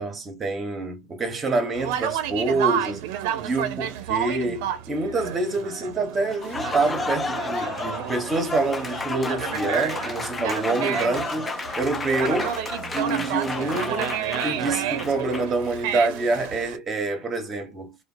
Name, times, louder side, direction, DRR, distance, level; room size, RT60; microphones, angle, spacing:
voice 1, 0.0-3.0 3.4-12.6 12.9-18.0, right 3 dB, 25° right, 1.0 m, -27 dB
Conversation, 1.7-16.8, right 10 dB, 80° right, 0.5 m, -31 dB
Applause, 6.3-15.7, left 3 dB, 20° left, 0.4 m, -31 dB
2.9 x 2.2 x 2.6 m
supercardioid pair, 125°, 0 cm